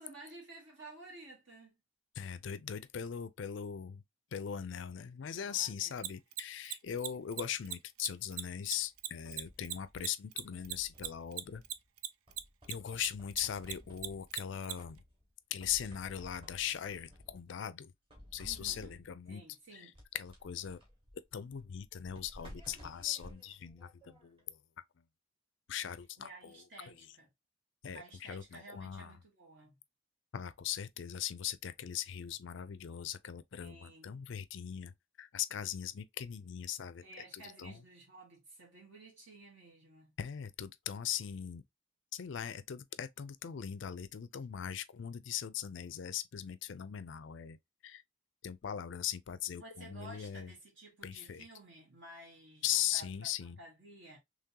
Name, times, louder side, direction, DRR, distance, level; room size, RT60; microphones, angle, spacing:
voice 1, 0.0-1.8 5.3-6.1 18.4-19.0 19.3-20.0 26.2-27.3 27.9-29.8 33.6-34.1 37.0-40.1 49.6-53.1 53.4-54.2, right 2 dB, 60° right, 1.7 m, -53 dB
voice 2, 2.2-4.0 4.3-11.6 12.7-15.0 15.5-17.9 18.3-19.4 19.7-19.9 20.1-20.8 21.3-24.6 25.7-26.9 27.8-29.1 30.3-37.0 37.3-37.8 40.2-41.6 42.1-47.6 47.8-48.0 48.4-50.5 51.0-51.5 52.6-53.6, left 9 dB, 60° left, 0.4 m, -39 dB
Mechanisms, 6.0-12.7 13.0-14.7, right 12 dB, 90° right, 0.4 m, -38 dB
sound 1, 8.8-10.0 10.5-11.9 12.3-14.4 14.7-15.3 15.6-17.5 18.1-19.2 19.9-24.4, equal, 25° right, 1.9 m, -55 dB
3.6 x 3.1 x 2.8 m
head